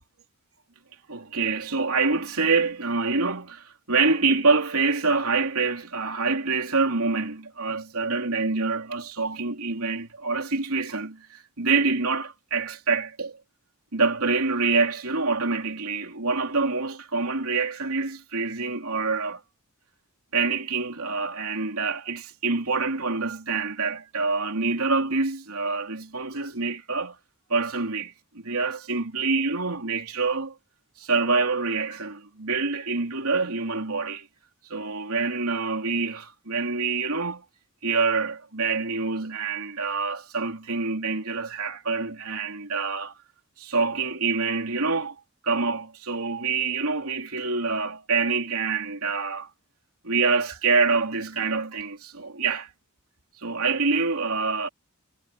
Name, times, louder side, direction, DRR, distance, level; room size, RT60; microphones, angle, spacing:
voice 1, 1.1-13.4 13.9-19.4 20.3-27.2 27.5-30.6 31.0-34.3 34.7-37.4 37.8-43.1 43.6-45.2 45.4-49.5 50.0-52.7 53.4-54.7, right 4 dB, 75° right, 3.4 m, -26 dB
head